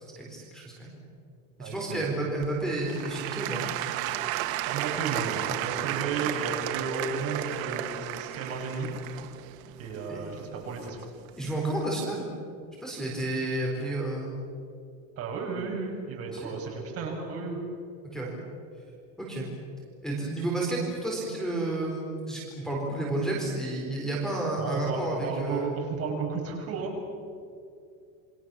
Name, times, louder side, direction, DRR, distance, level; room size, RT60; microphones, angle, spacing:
voice 1, 0.2-1.0 1.6-3.6 10.1-10.2 11.4-12.3 12.8-14.3 16.4-16.5 18.1-18.3 19.2-19.5 20.0-25.7, right 2 dB, ahead, -2 dB, 4.3 m, -31 dB
voice 2, 1.6-2.1 4.7-8.9 9.8-11.0 15.2-17.6 24.6-26.9, right 4 dB, 35° right, 0 dB, 6.3 m, -33 dB
Applause / Crowd, 2.4-11.3 11.9-12.0, right 14 dB, 75° right, 1.6 m, -33 dB
28.5 x 23.5 x 7.1 m, 2.4 s
cardioid pair, 165°, 41 cm